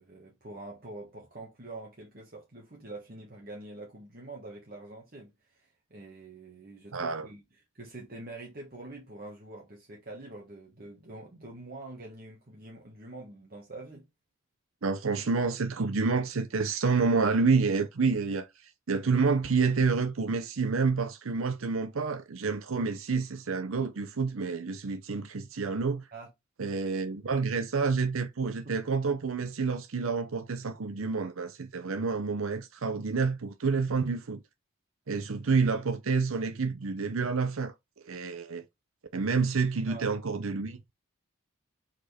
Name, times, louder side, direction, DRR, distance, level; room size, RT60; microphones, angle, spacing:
voice 1, 0.0-7.4 7.7-14.1 26.1-26.3 26.6-26.8 28.6-28.7 39.9-40.1, right 2 dB, 45° right, 1.5 m, -45 dB
voice 2, 6.9-7.3 14.8-26.1 26.6-34.4 35.1-37.7 38.1-38.6 39.1-40.9, right 4 dB, 75° right, 0.7 m, -28 dB
5.1 x 4.4 x 4.2 m
head